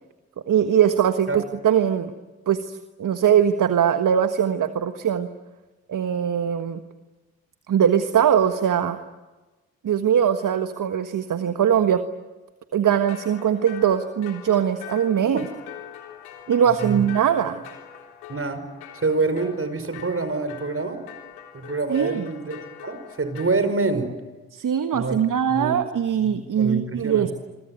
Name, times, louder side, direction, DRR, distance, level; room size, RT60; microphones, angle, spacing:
voice 1, 0.5-2.1 2.5-5.3 5.9-6.8 7.7-9.0 9.8-12.0 12.7-15.4 16.5-17.6 21.9-22.3 24.5-27.3, right 8 dB, 55° right, 9 dB, 1.5 m, -21 dB
sound 1, 12.9-23.6, left 10 dB, 85° left, 3.7 m, -43 dB
voice 2, 18.3-18.6 18.9-21.0 21.5-24.1 24.9-25.2 25.5-25.8 26.2-27.3, right 3 dB, 35° right, 10 dB, 5.5 m, -26 dB
27.0 x 23.5 x 9.3 m, 1.2 s
hypercardioid pair, 40°, 37 cm